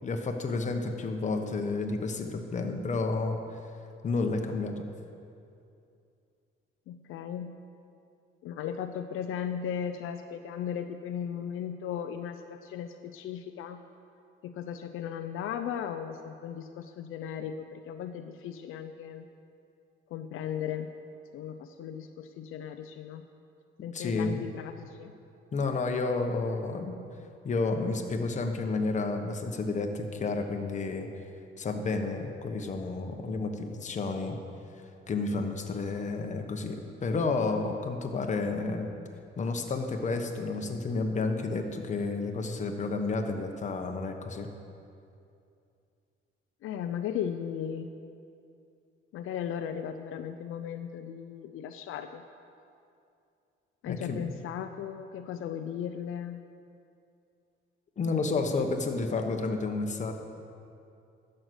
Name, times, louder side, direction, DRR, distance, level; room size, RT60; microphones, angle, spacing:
voice 1, 0.0-3.6 4.0-4.8 23.9-24.5 25.5-26.9 27.4-31.1 31.6-34.4 35.1-38.9 39.4-44.5 53.8-54.3 58.0-60.1, left 3 dB, 35° left, 4 dB, 1.1 m, -31 dB
voice 2, 6.9-7.6 8.4-13.8 14.4-19.3 20.1-20.9 21.3-23.2 23.8-25.1 46.6-47.9 49.1-52.2 53.8-56.4, left 8 dB, 75° left, 7 dB, 0.6 m, -36 dB
12.0 x 6.6 x 8.0 m, 2.5 s
cardioid pair, 125°, 21 cm